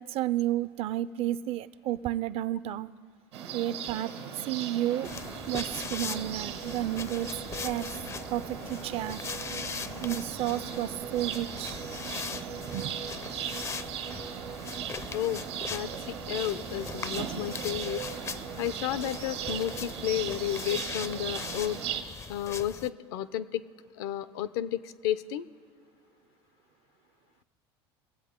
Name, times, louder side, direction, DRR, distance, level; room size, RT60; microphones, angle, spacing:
voice 1, 0.0-2.9 3.5-4.1 4.4-5.1 5.5-7.3 7.6-8.0 8.3-9.2 10.0-11.9 12.3-13.0, right 13 dB, 45° right, 16 dB, 0.4 m, -31 dB
sound 1, 3.3-22.0, right 8 dB, 85° right, 1.5 m, -38 dB
Alarm, 4.0-12.0, left 7 dB, 85° left, 1.6 m, -51 dB
sound 2, 5.0-22.9, left 5 dB, 20° left, 0.4 m, -40 dB
voice 2, 15.7-18.0 18.6-21.8 22.3-23.6 24.0-25.5, left 12 dB, 70° left, 15 dB, 0.5 m, -32 dB
22.0 x 7.8 x 3.7 m, 2.1 s
hypercardioid pair, 90°, 14 cm